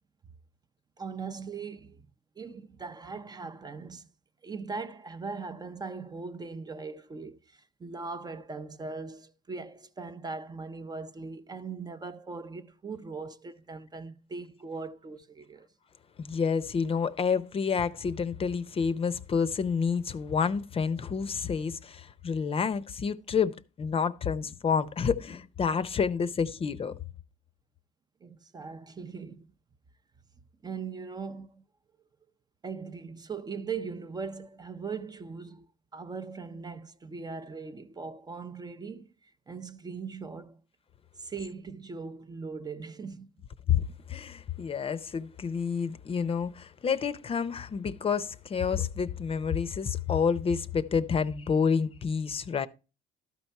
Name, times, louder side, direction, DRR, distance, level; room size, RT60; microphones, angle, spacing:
voice 1, 1.0-2.0 2.4-4.1 4.4-15.7 28.2-29.5 30.6-31.6 32.6-35.7 35.9-40.6 41.2-43.3, right 4 dB, 25° right, 0.6 m, -40 dB
voice 2, 16.2-26.9 43.7-52.7, left 6 dB, 35° left, 0.6 m, -29 dB
12.5 x 4.6 x 5.4 m
cardioid pair, 110°, 17 cm